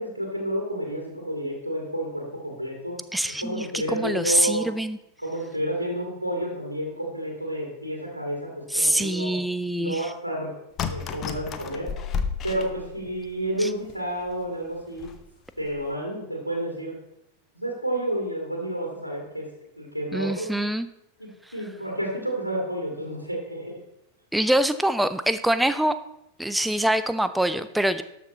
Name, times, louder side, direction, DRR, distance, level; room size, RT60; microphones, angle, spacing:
voice 1, 0.0-3.0 3.4-4.7 5.2-9.4 9.8-10.5 10.9-11.9 12.4-15.1 15.6-17.0 17.6-19.5 19.8-20.5 21.2-23.8, right 1 dB, 90° left, 0 dB, 1.9 m, -30 dB
voice 2, 3.1-5.0 8.7-10.0 13.6-13.7 20.1-20.9 24.3-26.0 26.4-28.0, right 1 dB, 5° right, 12 dB, 0.5 m, -24 dB
sound 1, 10.8-13.3 13.9-14.0 14.3-14.4 15.0-15.3 15.6-15.9, left 6 dB, 30° left, 0.8 m, -32 dB
12.5 x 6.0 x 4.1 m, 0.83 s
figure-of-eight pair, 90°, 0 cm